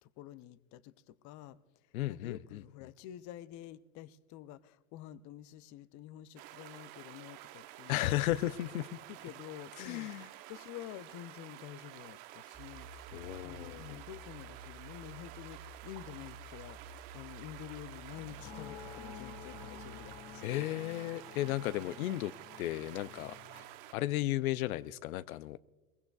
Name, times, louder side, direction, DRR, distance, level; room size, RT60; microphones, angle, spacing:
voice 1, 0.0-8.1 9.1-13.2 13.4-20.7 21.7-22.1, left 12 dB, 45° left, 0.6 m, -49 dB
voice 2, 1.9-2.4 7.9-9.0 9.8-10.3 13.1-14.0 20.4-22.3 22.6-23.6 23.9-25.6, left 15 dB, 85° left, 0.6 m, -34 dB
sound 1, 6.4-23.9, right 15 dB, 55° right, 0.9 m, -51 dB
sound 2, 12.5-20.1, right 1 dB, 15° right, 1.5 m, -52 dB
sound 3, 18.1-23.6, left 9 dB, 60° left, 2.2 m, -51 dB
22.5 x 20.0 x 2.4 m
supercardioid pair, 105°, 41 cm